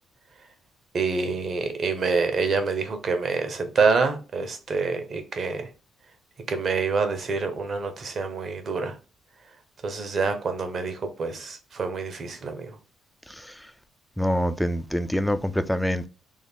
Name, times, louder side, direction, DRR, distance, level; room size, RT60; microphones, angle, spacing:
voice 1, 0.9-5.7 6.5-9.0 9.8-12.8, right 4 dB, 50° right, 0.8 m, -26 dB
voice 2, 13.3-13.7 14.2-16.1, equal, 5° left, 0.4 m, -26 dB
3.6 x 2.1 x 3.5 m
cardioid pair, 90°, 0 cm